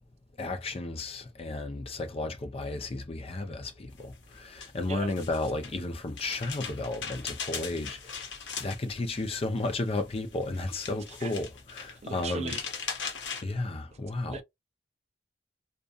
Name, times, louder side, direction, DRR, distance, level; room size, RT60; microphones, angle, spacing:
voice 1, 0.4-8.2 8.6-12.6 13.4-14.4, left 2 dB, 35° left, 0.5 m, -33 dB
sound 1, 4.0-13.4, left 6 dB, 80° left, 0.9 m, -40 dB
voice 2, 12.0-12.6 14.3-14.4, right 4 dB, 35° right, 0.4 m, -38 dB
2.5 x 2.3 x 2.4 m
head